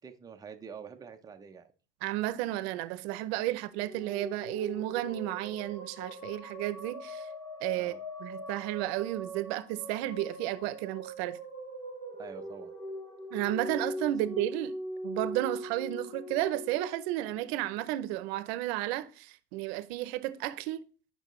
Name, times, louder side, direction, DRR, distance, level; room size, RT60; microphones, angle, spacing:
voice 1, 0.0-1.7 7.8-8.0 12.2-12.7, right 6 dB, 10° right, 0.4 m, -46 dB
voice 2, 2.0-7.3 7.6-7.9 8.2-11.4 13.3-14.7 15.0-20.8, right 15 dB, 85° right, 0.6 m, -33 dB
sound 1, 3.8-18.2, equal, 10° left, 1.7 m, -41 dB
8.7 x 5.4 x 3.1 m
cardioid pair, 155°, 31 cm